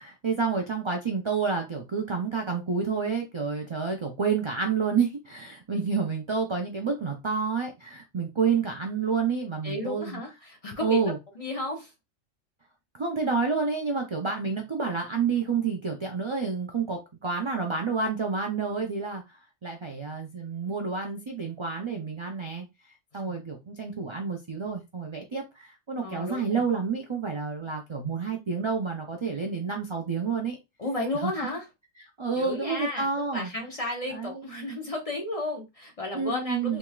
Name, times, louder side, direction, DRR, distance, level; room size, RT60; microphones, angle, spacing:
voice 1, 0.0-10.2 10.8-11.2 12.9-19.2 19.6-22.7 23.1-30.6 31.2-31.5 32.2-33.5 34.1-34.4 36.1-36.8, right 5 dB, 45° right, 1 dB, 0.3 m, -29 dB
voice 2, 9.6-11.9 23.2-23.3 26.0-26.6 30.8-31.7 32.4-36.8, left 2 dB, 30° left, 1 dB, 0.8 m, -33 dB
3.4 x 2.9 x 2.3 m, 0.23 s
omnidirectional pair, 1.3 m